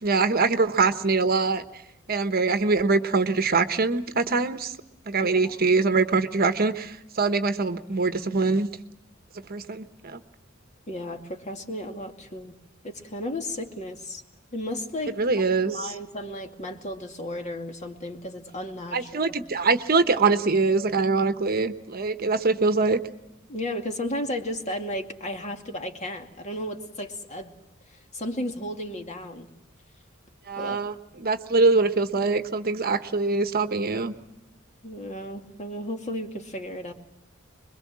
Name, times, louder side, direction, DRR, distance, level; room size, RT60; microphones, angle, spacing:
voice 1, 0.0-1.6 2.1-4.7 5.1-8.7 9.5-10.2 15.2-15.7 18.9-23.0 30.5-30.9 31.2-34.1, right 3 dB, 50° right, 9 dB, 1.1 m, -23 dB
voice 2, 5.2-5.6 10.9-12.5 12.8-14.2 14.5-15.2 15.7-19.4 23.5-27.5 28.1-29.5 30.6-30.8 34.8-36.9, left 1 dB, 35° left, 4 dB, 2.3 m, -34 dB
25.5 x 22.0 x 7.5 m, 0.86 s
head